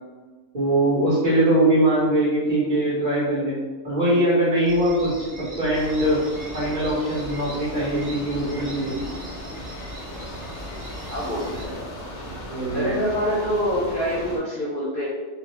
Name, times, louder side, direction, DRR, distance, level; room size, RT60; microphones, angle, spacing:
voice 1, 0.5-3.5 3.8-6.2 6.5-9.0 12.5-12.9, right 1 dB, 35° right, -9 dB, 0.8 m, -22 dB
sound 1, 4.7-11.7, equal, 80° right, 0.3 m, -41 dB
sound 2, 5.7-14.4, equal, 60° left, 1.0 m, -37 dB
voice 2, 11.1-11.8 12.7-15.1, equal, 85° left, -6 dB, 0.4 m, -26 dB
3.3 x 2.1 x 2.9 m, 1.3 s
omnidirectional pair, 1.6 m